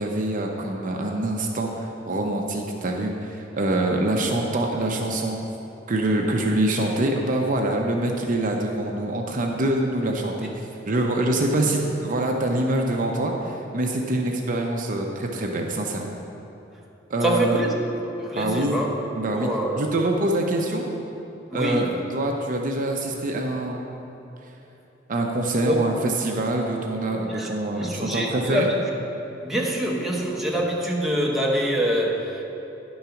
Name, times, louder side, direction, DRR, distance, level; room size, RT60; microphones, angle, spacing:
voice 1, 0.0-5.4 5.9-10.5 10.9-16.1 17.1-17.6 18.4-18.7 19.2-19.5 19.7-20.9 21.5-21.9 22.1-23.9 25.1-28.7, right 1 dB, 45° right, 1 dB, 0.6 m, -25 dB
voice 2, 17.2-17.7 18.2-18.9 19.3-19.8 21.5-22.0 25.6-25.8 27.3-27.5 27.8-28.7 29.4-32.4, right 1 dB, ahead, -3 dB, 0.9 m, -25 dB
10.5 x 3.9 x 5.7 m, 3.0 s
head